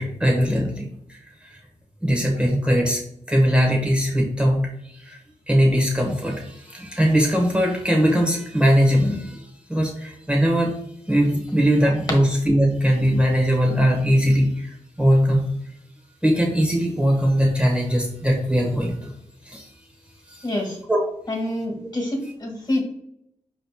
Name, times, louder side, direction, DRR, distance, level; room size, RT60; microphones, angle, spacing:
voice 1, 0.0-1.6 2.0-3.0 3.3-5.2 5.5-10.7 11.1-15.4 16.2-19.1 19.4-19.7 20.3-20.5 20.9-21.0, equal, 10° right, 0 dB, 1.0 m, -20 dB
voice 2, 20.4-20.8 21.3-22.8, left 1 dB, 35° left, 2 dB, 1.5 m, -26 dB
4.9 x 2.9 x 3.5 m, 0.75 s
cardioid pair, 60°, 13 cm